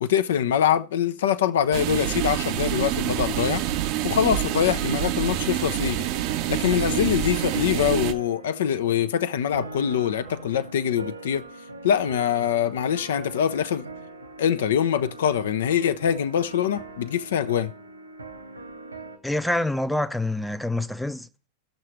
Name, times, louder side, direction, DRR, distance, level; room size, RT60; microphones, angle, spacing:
voice 1, 0.0-3.6 4.0-6.1 6.5-11.4 11.8-13.9 14.4-17.7, left 9 dB, 60° left, 0.5 m, -24 dB
sound 1, 1.7-8.1, right 13 dB, 45° right, 0.7 m, -27 dB
sound 2, 4.4-19.2, right 2 dB, 85° right, 1.9 m, -42 dB
voice 2, 19.2-21.5, left 1 dB, ahead, 0.6 m, -26 dB
18.5 x 6.6 x 3.0 m
figure-of-eight pair, 90°, 0 cm